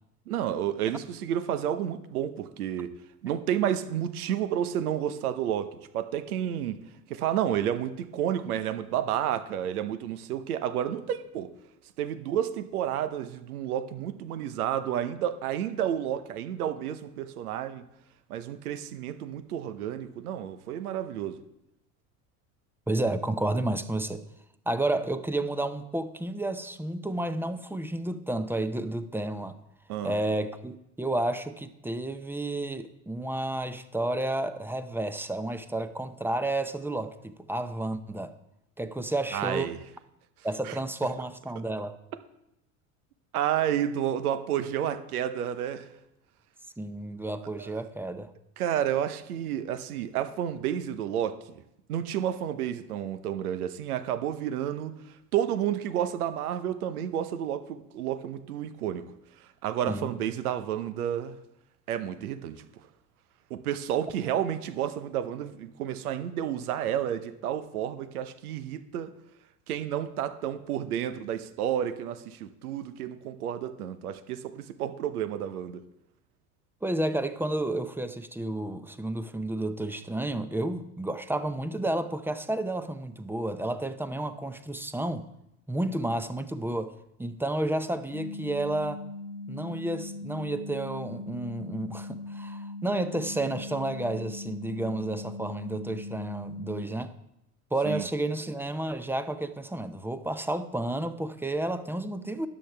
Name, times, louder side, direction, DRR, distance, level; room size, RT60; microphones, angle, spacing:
voice 1, 0.3-2.9 3.2-6.8 7.1-11.5 12.0-17.8 18.3-21.4 29.9-30.2 39.3-39.8 40.6-40.8 43.3-45.9 47.6-47.7 48.6-51.6 51.9-54.9 55.3-59.0 59.6-61.3 61.9-62.6 63.5-69.1 69.7-75.8 97.8-98.1, right 10 dB, 80° right, 11 dB, 0.9 m, -30 dB
voice 2, 22.9-24.2 24.7-29.6 30.0-38.3 38.8-39.7 40.4-42.0 46.8-48.3 59.9-60.1 76.8-85.2 85.7-86.9 87.2-89.0 89.5-97.1 97.7-102.5, right 1 dB, 5° right, 11 dB, 0.6 m, -31 dB
sound 1, 88.1-96.9, left 2 dB, 50° left, 1.4 m, -40 dB
12.5 x 8.7 x 3.4 m, 0.83 s
hypercardioid pair, 75°, 44 cm